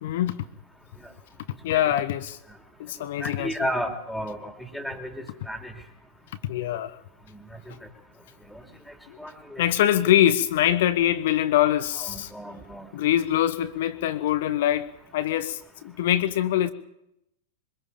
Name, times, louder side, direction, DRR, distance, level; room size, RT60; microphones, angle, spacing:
voice 1, 0.0-0.4 1.6-2.4 2.8-3.7 6.4-7.0 9.1-9.2 9.6-12.3 12.9-14.9 15.1-16.7, left 12 dB, 55° left, 12 dB, 1.4 m, -24 dB
voice 2, 3.2-5.7 7.3-7.4 8.5-8.6 9.2-9.6 11.9-12.9, equal, ahead, 4 dB, 3.3 m, -33 dB
24.0 x 22.0 x 5.2 m, 0.81 s
figure-of-eight pair, 95°, 0 cm